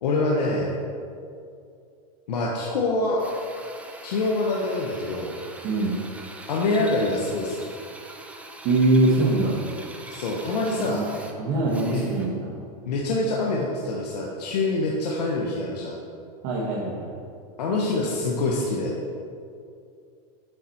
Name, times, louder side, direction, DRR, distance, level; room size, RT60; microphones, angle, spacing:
voice 1, 0.0-0.8 2.3-3.2 4.0-5.3 6.5-7.7 10.1-11.0 11.9-12.0 12.9-16.0 17.6-18.9, left 2 dB, 85° left, -2 dB, 0.9 m, -25 dB
Drill, 3.2-12.5, right 2 dB, 5° right, 0.5 m, -43 dB
voice 2, 5.6-6.0 8.6-9.6 10.8-11.0 11.4-12.5 16.4-17.1, right 2 dB, 45° right, -6 dB, 1.3 m, -22 dB
8.0 x 4.2 x 4.3 m, 2.4 s
supercardioid pair, 130°, 20 cm